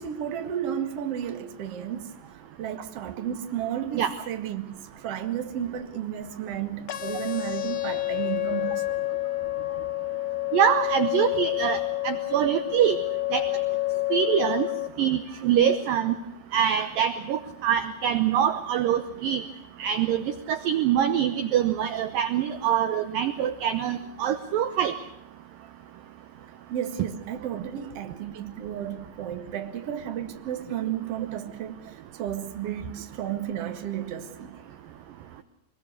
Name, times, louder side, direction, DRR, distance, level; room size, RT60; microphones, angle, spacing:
voice 1, 0.0-2.1 2.6-4.8 5.0-9.0 26.7-31.8 32.2-34.5, right 10 dB, 50° right, 2.1 m, -33 dB
sound 1, 6.9-14.9, left 17 dB, 65° left, 2.0 m, -29 dB
voice 2, 10.5-11.8 12.0-13.0 13.3-13.5 14.1-14.7 15.0-16.2 16.5-19.4 19.8-24.9, right 9 dB, 70° right, 2.3 m, -24 dB
24.0 x 22.0 x 6.6 m
omnidirectional pair, 4.9 m